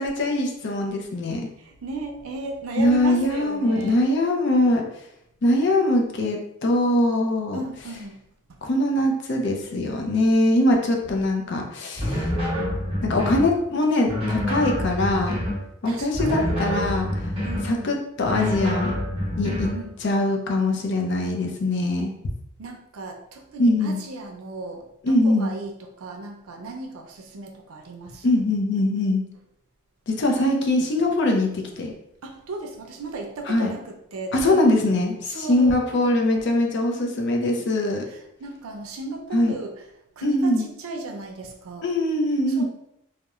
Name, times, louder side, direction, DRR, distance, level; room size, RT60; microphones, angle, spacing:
voice 1, 0.0-1.4 2.8-4.8 5.4-7.6 8.6-12.3 13.0-15.4 15.8-17.3 17.6-19.0 19.4-19.7 20.0-22.1 23.6-24.0 25.0-25.5 28.2-29.2 30.1-31.9 33.5-33.7 34.3-38.0 39.3-39.5 40.2-40.7 41.8-42.6, left 1 dB, 55° left, 1 dB, 0.4 m, -22 dB
voice 2, 1.6-4.0 7.5-8.2 8.5-8.6 10.7-10.8 15.9-16.6 17.4-18.0 19.4-20.0 22.6-28.3 32.2-34.6 35.3-35.8 38.1-39.7 40.2-41.9 42.5-42.6, right 3 dB, 80° right, 2 dB, 0.5 m, -35 dB
sound 1, 12.0-13.5 14.1-15.6 16.1-17.7 18.2-19.8, left 1 dB, 25° right, 0.8 m, -27 dB
2.9 x 2.1 x 2.3 m, 0.76 s
head